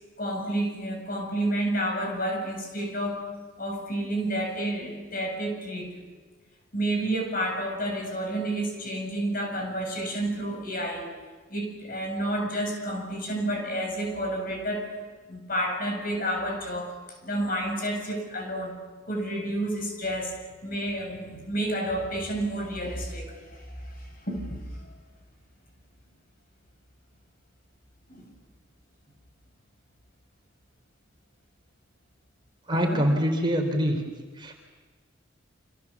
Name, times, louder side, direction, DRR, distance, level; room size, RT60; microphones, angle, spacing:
voice 1, 0.2-3.3 3.6-5.9 6.7-11.2 11.5-15.0 15.3-18.8 19.1-20.4 20.6-25.0 28.1-28.3 32.7-33.1, right 1 dB, 45° left, 2 dB, 7.8 m, -30 dB
voice 2, 32.7-34.0 34.4-34.5, equal, 25° right, 3 dB, 4.0 m, -24 dB
29.5 x 27.0 x 7.3 m, 1.4 s
head